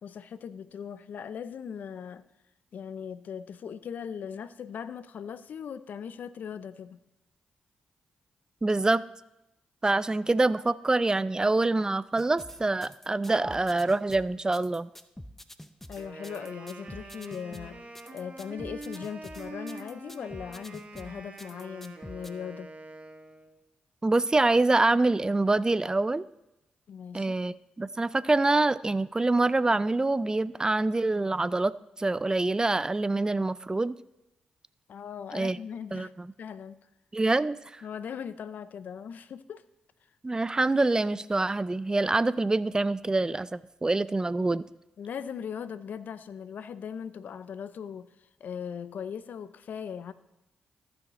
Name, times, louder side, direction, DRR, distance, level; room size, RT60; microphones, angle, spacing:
voice 1, 0.0-2.2 2.7-7.0 15.9-17.8 18.1-22.7 26.9-27.3 34.9-36.8 37.8-39.6 45.0-48.1 48.4-50.1, left 7 dB, 65° left, 15 dB, 0.5 m, -39 dB
voice 2, 8.6-9.0 9.8-14.9 24.0-26.2 27.1-31.7 32.0-33.9 35.3-35.6 35.9-36.3 37.1-37.8 40.2-44.6, right 2 dB, 25° right, 17 dB, 0.4 m, -25 dB
sound 1, 12.2-22.3, equal, 10° left, 0.7 m, -47 dB
Wind instrument woodwind instrument, 16.0-23.6, right 2 dB, 40° right, 1.5 m, -45 dB
14.5 x 6.4 x 3.0 m, 0.89 s
supercardioid pair, 45°, 3 cm